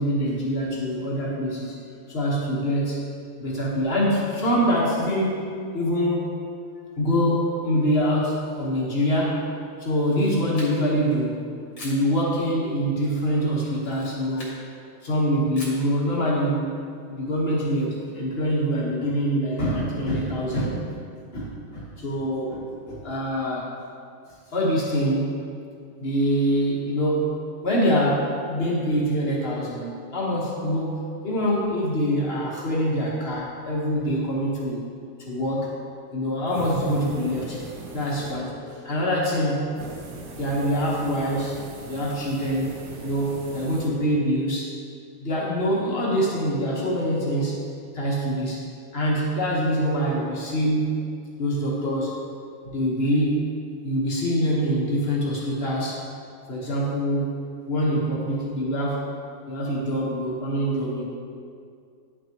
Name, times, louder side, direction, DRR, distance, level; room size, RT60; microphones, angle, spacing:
voice 1, 0.0-1.8 2.1-3.0 3.4-5.5 5.7-6.3 7.0-9.5 9.8-11.5 11.8-14.5 15.0-16.8 17.1-20.8 21.3-23.7 24.5-25.4 26.0-34.9 35.3-35.7 36.1-37.6 37.9-39.7 40.4-41.6 41.9-42.7 43.0-44.8 45.2-47.6 47.9-48.6 48.9-51.1 51.4-52.1 52.7-53.5 53.8-56.0 56.5-57.4 57.7-59.1 59.5-61.0, equal, 45° left, -5 dB, 1.6 m, -25 dB
Camera, 9.9-11.0 11.7-12.1 13.7-14.6 15.6-15.9, left 1 dB, 80° left, 2.1 m, -42 dB
sound 1, 36.5-38.8 39.8-43.9, right 3 dB, 85° right, 1.3 m, -40 dB
10.0 x 6.1 x 3.0 m, 2.3 s
omnidirectional pair, 1.4 m